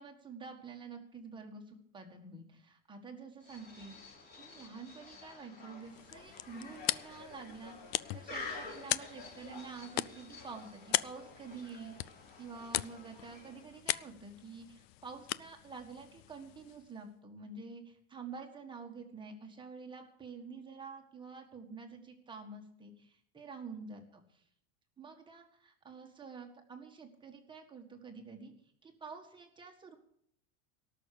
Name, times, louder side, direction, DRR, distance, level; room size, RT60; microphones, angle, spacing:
voice 1, 0.0-3.9 4.3-7.8 8.1-24.4 25.0-28.5 28.8-30.0, right 4 dB, 10° right, 3 dB, 1.6 m, -48 dB
sound 1, 3.4-13.8, left 3 dB, 25° left, 3.4 m, -50 dB
sound 2, 5.8-17.0, left 17 dB, 50° left, 0.4 m, -40 dB
18.0 x 6.5 x 8.3 m, 0.67 s
supercardioid pair, 165°, 41 cm